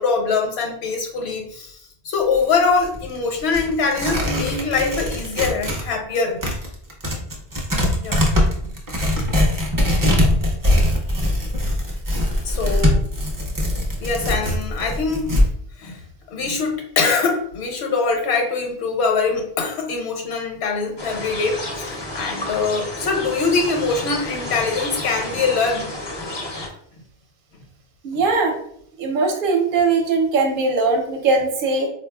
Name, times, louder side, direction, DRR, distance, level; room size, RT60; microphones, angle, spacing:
voice 1, 0.0-1.8 2.0-6.4 7.9-8.2 8.6-8.7 9.4-9.5 10.1-10.2 10.8-10.9 12.4-13.0 14.0-15.4 15.8-16.0 16.3-25.9, left 4 dB, 85° left, 2 dB, 0.9 m, -23 dB
Tearing, 2.2-5.9 6.1-15.5, left 1 dB, 25° right, 0.5 m, -21 dB
sound 1, 21.0-26.7, left 1 dB, 40° left, 0.4 m, -31 dB
voice 2, 28.0-28.6 29.0-31.9, right 3 dB, 60° right, 2 dB, 0.8 m, -20 dB
4.0 x 2.3 x 2.2 m, 0.66 s
omnidirectional pair, 1.1 m